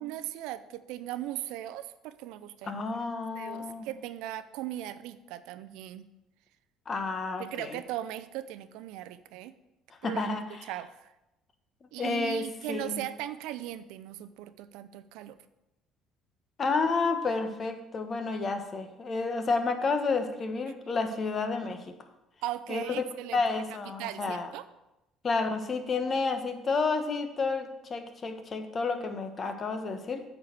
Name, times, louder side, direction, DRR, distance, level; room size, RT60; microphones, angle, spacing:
voice 1, 0.0-2.8 3.3-6.1 7.4-9.5 10.0-10.2 10.5-11.1 11.9-15.4 22.4-23.4 23.8-24.6 29.4-29.5, right 13 dB, 75° right, 13 dB, 0.5 m, -38 dB
voice 2, 2.6-3.9 6.9-7.8 10.0-10.4 12.0-13.0 16.6-21.9 22.7-22.8 23.3-24.5 25.2-30.2, left 4 dB, 40° left, 8 dB, 1.2 m, -30 dB
8.5 x 4.7 x 6.9 m, 0.93 s
supercardioid pair, 70°, 0 cm